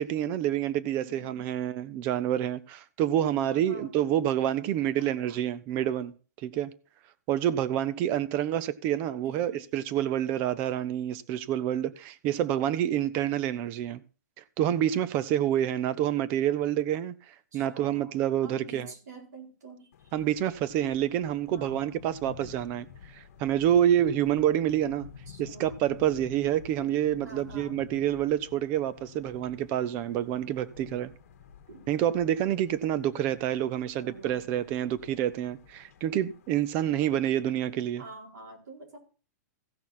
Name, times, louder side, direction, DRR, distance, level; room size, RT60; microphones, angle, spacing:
voice 1, 0.0-6.1 6.4-6.7 7.3-14.0 14.6-17.1 17.5-18.9 20.1-22.9 23.1-25.1 25.4-31.1 31.9-38.0, right 11 dB, 20° right, 0.4 m, -28 dB
voice 2, 1.0-1.5 3.4-4.0 5.0-5.4 9.2-9.6 17.5-20.1 21.5-22.1 25.3-25.8 26.9-27.0 27.2-27.9 30.8-30.9 31.7-31.9 34.0-34.5 38.0-39.0, right 3 dB, 75° right, 4.3 m, -47 dB
sound 1, 19.9-37.7, left 8 dB, 50° left, 1.4 m, -51 dB
15.5 x 6.3 x 4.2 m
hypercardioid pair, 175°, 9 cm